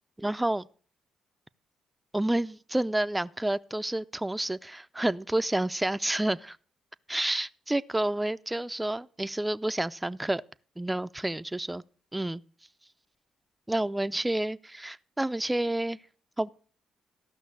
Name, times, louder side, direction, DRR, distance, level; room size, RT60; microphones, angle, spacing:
voice 1, 0.2-0.7 2.1-6.6 7.1-10.4 10.8-11.8 12.1-12.4 13.7-16.0 16.4-16.5, right 1 dB, 15° right, 0.5 m, -29 dB
14.5 x 6.2 x 6.6 m
supercardioid pair, 55°, 0 cm